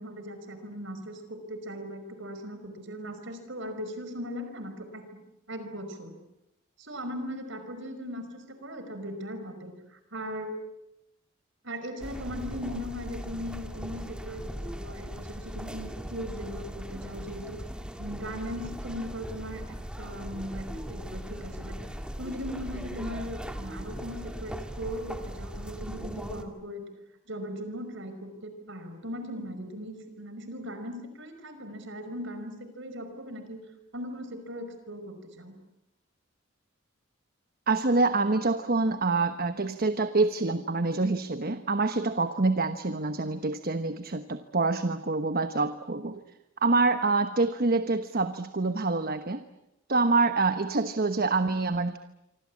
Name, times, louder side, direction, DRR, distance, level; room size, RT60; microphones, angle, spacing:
voice 1, 0.0-5.1 5.5-6.1 6.8-10.5 11.6-17.6 18.0-19.6 20.0-21.8 22.2-26.9 27.3-33.6 33.9-35.6, equal, 60° right, 8 dB, 5.3 m, -38 dB
sound 1, 12.0-26.4, equal, 5° right, 2.2 m, -39 dB
voice 2, 37.7-46.2 46.6-49.4 49.9-52.0, right 3 dB, 45° right, 10 dB, 1.2 m, -26 dB
26.5 x 25.0 x 8.6 m, 0.88 s
head